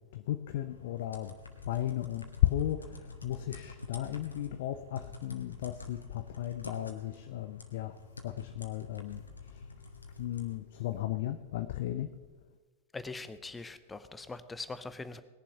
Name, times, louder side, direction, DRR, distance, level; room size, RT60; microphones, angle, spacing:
voice 1, 0.1-1.4 1.7-8.0 8.2-9.7 10.2-12.1, left 13 dB, 55° left, 10 dB, 0.5 m, -35 dB
sound 1, 0.5-10.6, left 3 dB, 80° left, 1.5 m, -48 dB
voice 2, 12.9-15.2, left 3 dB, 10° left, 13 dB, 0.7 m, -42 dB
19.5 x 7.1 x 5.8 m, 1.3 s
figure-of-eight pair, 90°, 0 cm